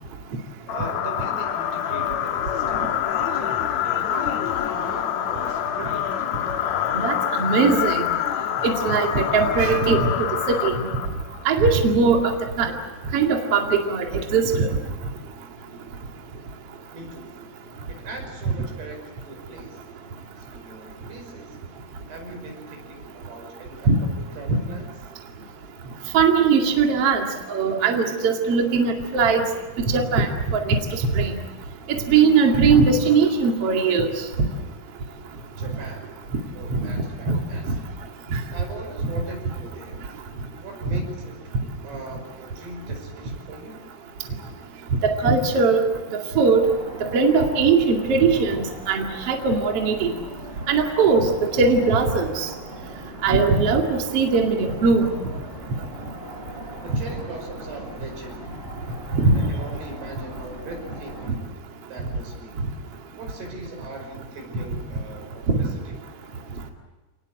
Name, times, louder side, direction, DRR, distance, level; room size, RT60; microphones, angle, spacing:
sound 1, 0.7-11.4, left 10 dB, 65° left, 1.9 m, -26 dB
voice 1, 0.7-6.1 16.9-17.2 17.9-19.8 20.4-21.5 22.1-23.9 24.3-24.9 35.6-36.0 36.5-37.7 38.5-40.0 40.6-41.4 41.8-43.9 56.8-58.7 59.3-61.5 61.9-62.6 63.2-65.9, right 2 dB, 80° right, 3 dB, 7.5 m, -40 dB
voice 2, 6.9-8.1 8.6-10.7 11.4-12.3 12.6-12.7 13.1-14.0 14.3-14.7 23.9-24.0 24.5-24.6 26.1-29.5 29.9-30.8 31.1-31.3 31.9-34.1 36.8-37.4 38.3-38.4 45.0-45.8 46.1-46.7 47.0-50.1 50.7-51.3 51.6-52.5 53.2-55.1 59.1-59.5 65.5-65.6, right 4 dB, 40° right, 2 dB, 2.7 m, -20 dB
sound 2, 46.6-61.3, equal, 15° right, 5.3 m, -40 dB
28.5 x 19.5 x 7.7 m, 1.2 s
omnidirectional pair, 4.7 m